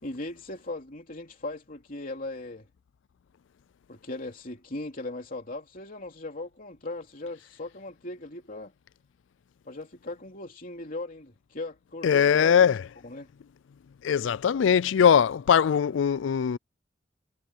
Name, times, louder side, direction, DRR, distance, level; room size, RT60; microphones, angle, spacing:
voice 1, 0.0-2.7 3.9-8.7 9.6-12.7 13.0-13.3, left 2 dB, 50° left, 3.1 m, -38 dB
voice 2, 12.0-12.8 14.0-16.6, left 7 dB, 80° left, 0.4 m, -21 dB
head